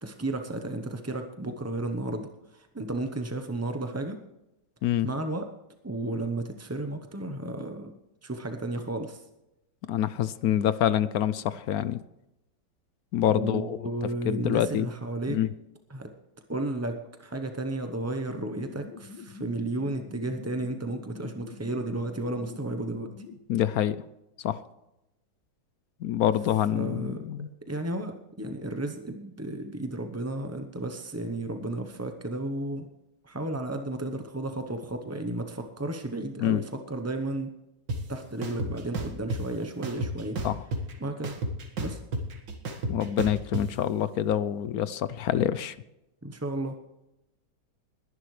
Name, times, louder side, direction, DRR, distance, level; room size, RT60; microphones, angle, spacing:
voice 1, 0.0-4.2 5.0-5.5 5.8-7.9 8.2-9.2 13.3-15.4 15.9-16.1 16.5-23.1 26.7-27.2 27.7-32.9 33.2-37.5 38.1-40.4 41.0-41.3 41.8-42.0 46.2-46.7, right 2 dB, 20° right, 6 dB, 0.4 m, -33 dB
voice 2, 9.9-12.0 13.1-13.8 14.2-14.9 15.3-15.5 23.5-24.0 24.4-24.6 26.0-27.5 36.4-36.6 40.4-40.5 42.9-45.8, left 11 dB, 70° left, 15 dB, 0.9 m, -26 dB
sound 1, 18.3-23.4, left 5 dB, 90° left, 1.6 m, -45 dB
sound 2, 37.9-38.0 38.4-39.4 39.8-40.9 41.2-43.6, right 2 dB, 85° right, 2.4 m, -31 dB
20.5 x 11.0 x 3.2 m, 0.91 s
omnidirectional pair, 1.9 m